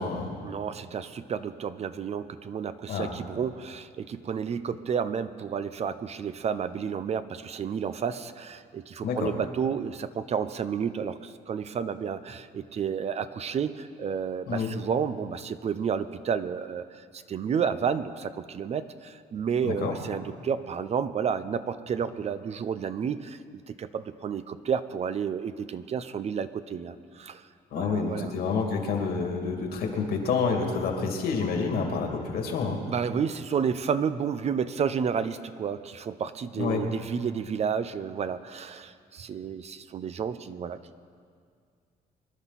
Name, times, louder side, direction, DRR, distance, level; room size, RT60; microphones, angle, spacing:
voice 1, 0.4-23.4 23.7-27.4 27.8-28.3 32.9-41.0, right 7 dB, 40° right, 12 dB, 0.6 m, -31 dB
voice 2, 19.6-19.9 27.7-32.8 36.6-36.8, left 5 dB, 70° left, 2 dB, 2.5 m, -28 dB
24.5 x 11.0 x 4.1 m, 2.2 s
cardioid pair, 110°, 17 cm